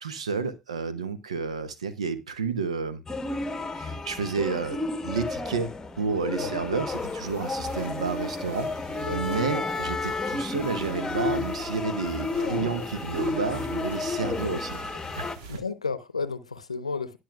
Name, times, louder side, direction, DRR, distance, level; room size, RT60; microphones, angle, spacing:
voice 1, 0.0-3.0 3.7-8.7 9.1-14.8 15.2-15.3, right 5 dB, 85° right, 0.9 m, -31 dB
sound 1, 3.1-15.4, left 3 dB, 15° left, 1.0 m, -32 dB
sound 2, 6.9-15.6, right 4 dB, 65° right, 1.9 m, -47 dB
voice 2, 9.0-9.4 12.4-12.9 15.1-17.2, left 4 dB, 90° left, 0.7 m, -34 dB
18.5 x 6.4 x 2.3 m
figure-of-eight pair, 65°, 3 cm